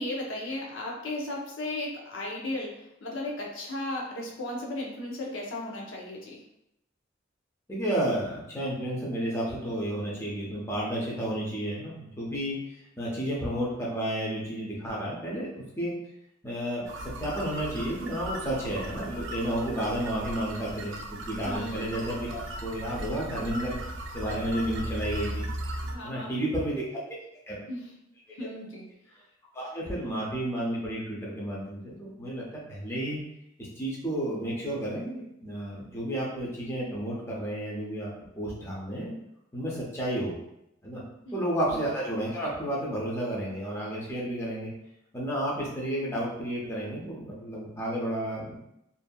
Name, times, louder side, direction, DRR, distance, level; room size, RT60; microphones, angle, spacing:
voice 1, 0.0-6.4 21.4-21.8 25.9-26.4 27.7-27.9 28.4-28.8 41.2-41.4 41.7-41.8, left 1 dB, 85° left, -2 dB, 0.7 m, -35 dB
voice 2, 7.7-12.5 13.0-15.9 16.4-16.9 17.2-20.9 21.2-23.8 24.1-25.5 26.0-27.1 27.5-27.7 29.5-32.4 32.7-33.2 33.8-39.1 39.5-40.4 40.8-41.0 41.3-44.7 45.1-48.5, right 1 dB, 15° left, -5 dB, 0.6 m, -31 dB
sound 1, 16.9-26.0, right 1 dB, 65° right, 0.4 m, -37 dB
2.6 x 2.6 x 2.2 m, 0.82 s
head